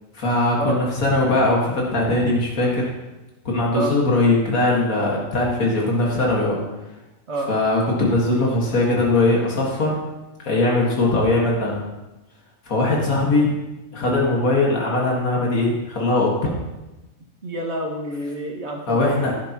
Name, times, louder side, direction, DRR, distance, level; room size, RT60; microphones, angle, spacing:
voice 1, 0.1-2.9 3.5-6.6 7.4-10.0 10.4-11.8 12.6-13.5 13.9-16.5 18.9-19.3, left 2 dB, 90° left, -3 dB, 2.2 m, -20 dB
voice 2, 17.4-19.3, right 2 dB, 55° right, 0 dB, 2.0 m, -28 dB
16.0 x 10.0 x 3.0 m, 1.0 s
omnidirectional pair, 1.4 m